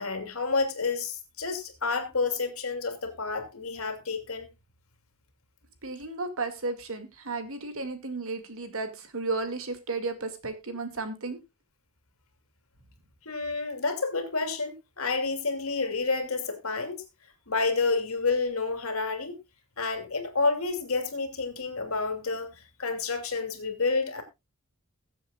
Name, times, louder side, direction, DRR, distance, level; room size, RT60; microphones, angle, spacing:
voice 1, 0.0-4.5 13.2-17.0 17.5-19.3 19.8-24.2, left 4 dB, 70° left, 2.7 m, -29 dB
voice 2, 5.8-11.4, right 3 dB, 65° right, 2.2 m, -33 dB
21.5 x 7.6 x 2.4 m
head